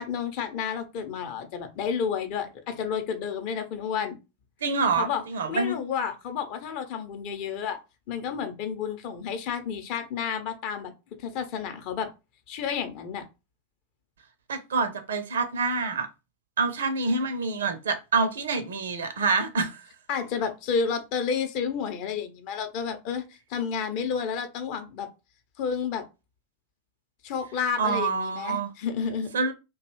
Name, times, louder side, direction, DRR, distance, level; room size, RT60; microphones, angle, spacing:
voice 1, 0.0-4.2 5.0-5.2 5.5-7.8 8.1-10.9 11.2-12.1 12.5-13.2 20.1-23.2 23.5-25.1 25.6-26.0 27.2-29.3, left 6 dB, 45° left, 0.6 m, -30 dB
voice 2, 4.6-5.8 14.5-16.1 16.6-19.8 27.8-28.7 29.3-29.5, right 4 dB, 65° right, 0.5 m, -26 dB
2.6 x 2.3 x 3.0 m
figure-of-eight pair, 90°, 0 cm